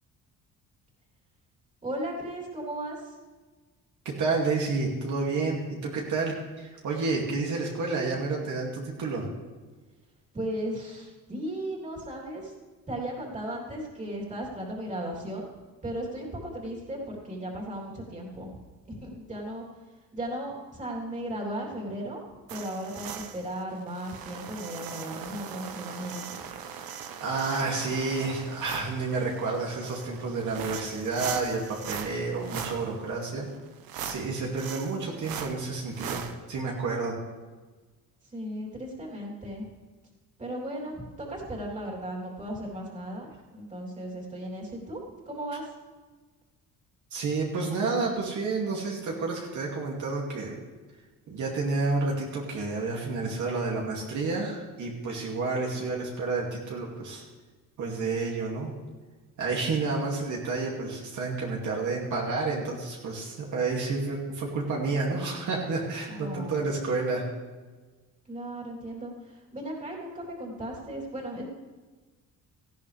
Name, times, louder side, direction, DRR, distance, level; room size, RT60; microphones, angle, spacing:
voice 1, 1.8-3.1 10.3-12.6 12.9-15.5 15.8-18.6 18.9-19.6 20.1-22.2 22.5-26.4 38.2-39.7 40.4-45.0 45.2-45.7 66.1-66.7 68.2-71.4, right 1 dB, 20° right, -3 dB, 3.3 m, -36 dB
voice 2, 4.0-9.3 27.2-33.5 34.0-37.2 47.1-50.6 51.3-57.2 57.8-58.7 59.4-67.3, right 3 dB, 60° right, -2 dB, 2.5 m, -30 dB
sound 1, 22.5-36.3, right 8 dB, 90° right, 1.2 m, -40 dB
18.0 x 14.5 x 3.4 m, 1.3 s
cardioid pair, 150°, 34 cm